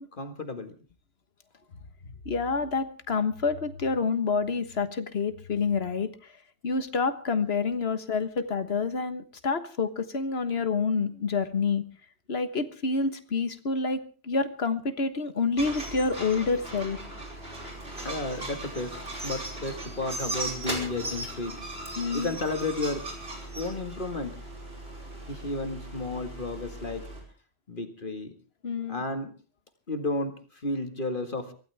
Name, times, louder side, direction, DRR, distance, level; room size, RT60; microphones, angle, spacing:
voice 1, 0.1-0.8 18.0-21.6 22.1-23.1 23.6-24.4 25.3-27.1 27.7-28.3 28.9-29.3 29.9-31.5, left 2 dB, 55° left, 7 dB, 2.1 m, -33 dB
voice 2, 2.3-6.3 6.6-11.8 12.3-17.0 22.0-22.3 28.6-29.0, left 4 dB, 75° left, 11 dB, 1.7 m, -28 dB
sound 1, 15.6-27.2, right 1 dB, 70° right, 5.6 m, -38 dB
24.0 x 16.0 x 3.5 m, 0.38 s
omnidirectional pair, 1.1 m